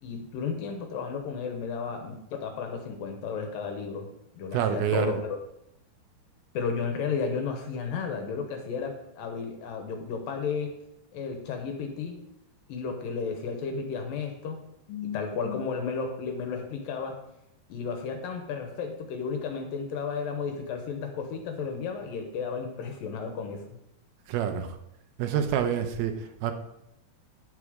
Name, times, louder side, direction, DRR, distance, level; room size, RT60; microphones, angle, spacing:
voice 1, 0.0-4.1 4.3-5.4 6.5-10.7 11.1-12.2 12.7-17.2 17.7-23.6, left 5 dB, 70° left, 4 dB, 2.5 m, -33 dB
voice 2, 4.5-5.2 24.3-24.8 25.2-26.5, right 9 dB, 80° right, 8 dB, 2.5 m, -27 dB
9.6 x 7.4 x 5.0 m, 0.83 s
omnidirectional pair, 4.6 m